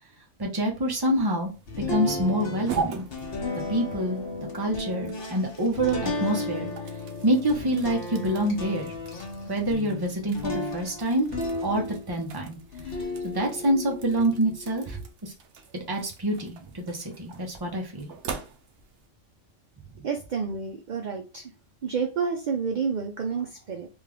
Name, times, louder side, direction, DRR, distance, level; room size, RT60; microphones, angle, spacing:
voice 1, 0.4-1.5 1.9-3.0 3.7-4.2 4.5-6.7 7.2-9.0 9.5-11.3 11.6-12.6 13.2-15.3 15.9-18.1, right 1 dB, 25° right, 1 dB, 0.7 m, -26 dB
sound 1, 1.1-19.1, right 6 dB, 75° right, 0.9 m, -42 dB
sound 2, 1.7-12.3 12.7-15.0, left 2 dB, 55° left, 1.0 m, -34 dB
voice 2, 20.0-21.4 21.8-23.9, right 5 dB, 55° right, 3 dB, 0.5 m, -29 dB
3.6 x 2.4 x 3.4 m, 0.32 s
omnidirectional pair, 1.2 m